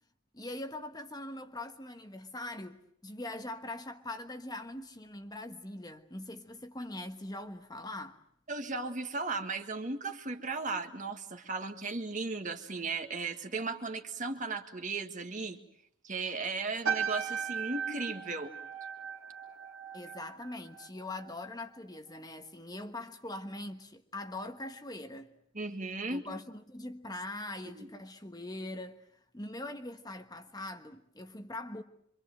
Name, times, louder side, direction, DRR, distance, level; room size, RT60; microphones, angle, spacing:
voice 1, 0.3-8.2 19.9-25.3 26.1-29.0 29.3-31.8, left 2 dB, 20° left, 1.3 m, -42 dB
voice 2, 8.5-15.6 16.0-18.5 25.6-26.2 27.7-27.9, right 3 dB, 40° right, 1.9 m, -36 dB
sound 1, 16.8-21.5 21.7-22.1, right 6 dB, 85° right, 2.4 m, -37 dB
26.5 x 25.5 x 7.8 m
head